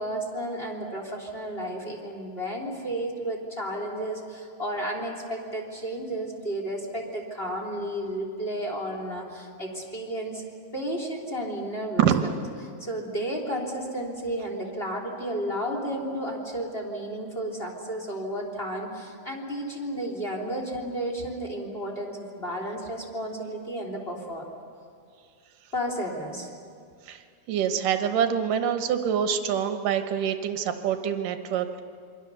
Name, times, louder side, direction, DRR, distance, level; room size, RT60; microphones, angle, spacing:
voice 1, 0.0-10.5 10.7-12.4 12.8-24.5 25.7-26.5, right 1 dB, 15° left, -1 dB, 2.8 m, -32 dB
voice 2, 27.5-31.8, right 8 dB, 70° right, 7 dB, 2.4 m, -25 dB
27.5 x 24.0 x 6.9 m, 2.2 s
omnidirectional pair, 4.5 m